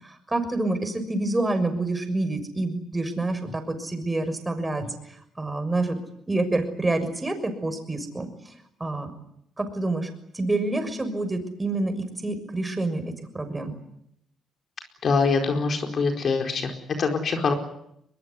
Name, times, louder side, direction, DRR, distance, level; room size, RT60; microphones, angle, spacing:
voice 1, 0.0-4.8 5.4-6.0 6.3-8.5 8.8-9.1 9.6-10.1 10.3-13.8, right 2 dB, 15° right, 7 dB, 6.6 m, -27 dB
voice 2, 15.0-17.5, left 4 dB, 50° left, 4 dB, 4.5 m, -24 dB
22.5 x 22.5 x 9.8 m, 0.75 s
cardioid pair, 90°, 0 cm